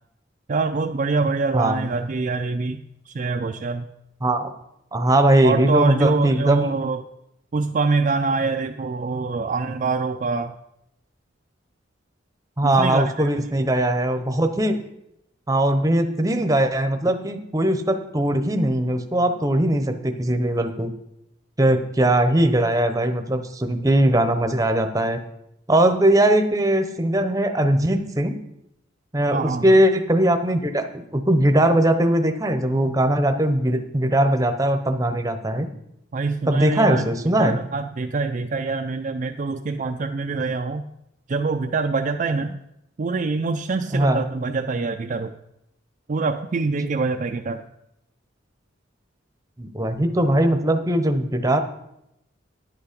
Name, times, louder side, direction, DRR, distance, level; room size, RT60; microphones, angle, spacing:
voice 1, 0.5-3.9 5.4-7.0 7.5-10.5 12.6-13.3 29.3-29.7 36.1-37.1 37.4-40.8 41.3-42.6 43.0-45.3 46.1-47.6, right 4 dB, 40° right, 5 dB, 0.4 m, -25 dB
voice 2, 1.5-2.1 4.2-4.5 4.9-6.7 12.6-14.8 15.5-20.9 21.6-25.2 25.7-28.4 29.1-35.7 36.5-37.6 43.9-44.2 49.6-51.6, right 1 dB, 20° right, 7 dB, 0.8 m, -20 dB
10.5 x 8.2 x 5.1 m, 0.81 s
head